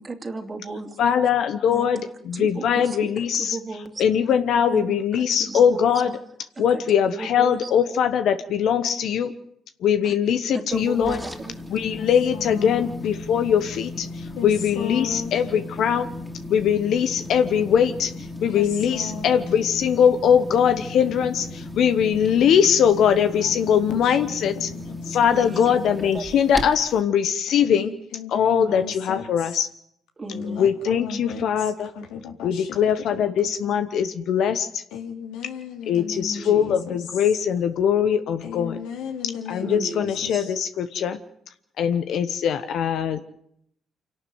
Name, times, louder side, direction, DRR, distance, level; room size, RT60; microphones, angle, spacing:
voice 1, 0.0-1.0 1.7-1.9 2.3-3.0 3.4-4.1 4.7-6.2 6.7-6.8 7.1-7.7 10.0-10.1 10.5-11.6 25.3-26.4 30.2-30.8 36.4-36.7 39.6-40.0 40.3-40.4, right 3 dB, 30° right, 5 dB, 2.7 m, -35 dB
voice 2, 1.0-3.6 4.0-6.2 6.6-9.3 9.8-11.2 11.7-14.1 14.4-16.1 16.5-18.1 18.4-24.7 25.1-27.9 28.3-29.7 30.6-31.9 32.4-34.7 35.9-38.8 39.5-41.2 41.8-43.2, left 8 dB, 70° left, 9 dB, 1.1 m, -21 dB
sound 1, 10.7-27.0, left 2 dB, 5° left, 2.9 m, -36 dB
voice 3, 11.9-13.0 14.4-15.3 18.5-19.4 23.4-24.8 27.6-29.5 30.3-31.4 31.9-32.8 33.2-33.3 33.6-33.7 34.9-36.8 38.4-40.5, left 6 dB, 85° left, 3 dB, 2.8 m, -35 dB
25.5 x 12.0 x 9.5 m, 0.72 s
supercardioid pair, 75°, 0 cm